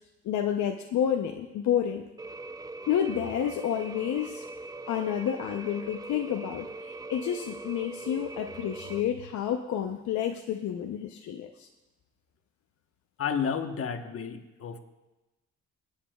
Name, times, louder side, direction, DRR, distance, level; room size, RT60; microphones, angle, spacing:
voice 1, 0.2-2.0 2.9-4.4 4.9-11.7, left 9 dB, 70° left, 3 dB, 0.7 m, -30 dB
sound 1, 2.2-9.0, right 3 dB, 15° right, 0.4 m, -41 dB
voice 2, 13.2-14.8, left 7 dB, 50° left, 6 dB, 1.1 m, -31 dB
24.5 x 8.4 x 2.3 m, 1.0 s
cardioid pair, 90°, 30 cm